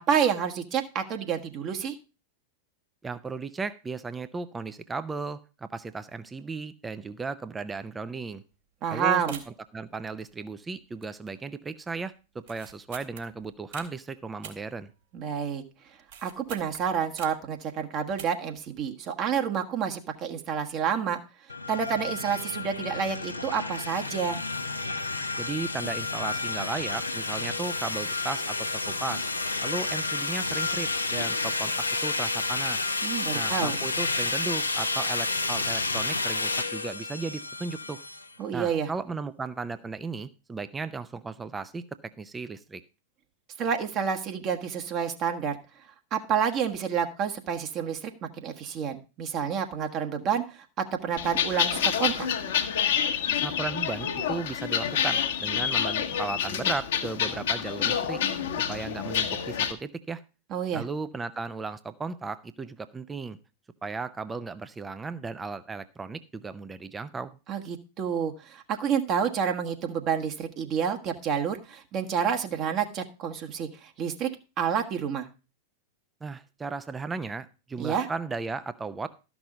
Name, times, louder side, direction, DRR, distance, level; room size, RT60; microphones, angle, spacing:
voice 1, 0.0-1.9 8.8-9.4 15.1-15.6 16.2-21.2 21.7-24.4 33.0-33.8 38.4-38.9 43.6-45.6 46.1-48.1 48.4-52.3 60.5-60.8 67.5-74.3 74.6-75.3 77.8-78.1, right 7 dB, 35° right, 5 dB, 1.3 m, -29 dB
voice 2, 3.0-8.4 8.9-9.2 9.7-14.9 25.4-28.6 28.9-29.3 29.6-32.9 33.3-38.0 38.5-41.8 42.2-42.8 53.4-58.2 58.7-60.2 60.7-63.4 63.8-67.3 76.2-79.1, right 4 dB, 15° right, 13 dB, 0.6 m, -35 dB
sound 1, 8.5-8.6 8.8-8.9 9.3-9.7 10.2-10.7 11.0-11.4 11.7-11.8 12.4-13.9 14.4-15.3 15.6-17.5 18.0-18.6 18.8-18.9, right 8 dB, 55° right, 1.9 m, -45 dB
sound 2, 21.5-38.3, left 3 dB, 80° left, 0.8 m, -30 dB
sound 3, 51.2-59.7, left 8 dB, 60° left, 1.1 m, -28 dB
13.0 x 6.1 x 4.8 m, 0.32 s
figure-of-eight pair, 90°, 0 cm